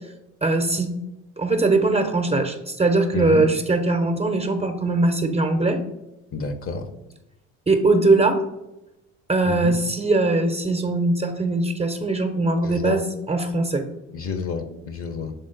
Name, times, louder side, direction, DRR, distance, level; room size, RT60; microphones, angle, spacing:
voice 1, 0.4-0.9 1.4-5.8 7.7-8.4 9.3-13.8, right 2 dB, 15° right, 6 dB, 0.8 m, -21 dB
voice 2, 3.1-3.5 6.3-6.9 9.5-9.8 12.6-13.0 14.1-15.3, left 4 dB, 40° left, 8 dB, 0.9 m, -29 dB
6.8 x 3.7 x 3.9 m, 0.93 s
hypercardioid pair, 65°, 37 cm